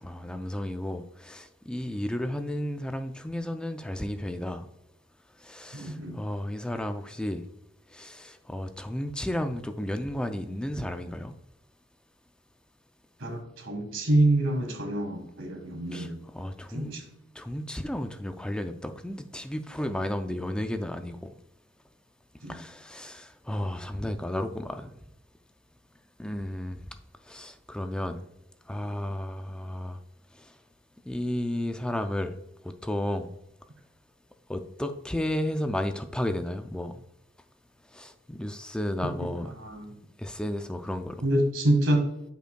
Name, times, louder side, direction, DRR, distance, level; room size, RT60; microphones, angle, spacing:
voice 1, 0.0-4.7 5.4-7.5 7.9-11.3 15.9-16.9 17.4-21.3 22.5-24.9 26.2-26.8 27.3-28.2 28.7-30.0 30.4-30.5 31.0-32.4 32.6-33.3 34.5-37.0 37.9-39.6 40.2-41.2, left 1 dB, 5° left, 7 dB, 0.3 m, -33 dB
voice 2, 5.7-6.2 13.2-16.2 16.7-17.0 22.4-22.6 39.0-39.3 39.6-40.0 41.2-42.1, right 1 dB, 85° right, 4 dB, 1.5 m, -26 dB
8.9 x 5.2 x 2.2 m, 0.85 s
head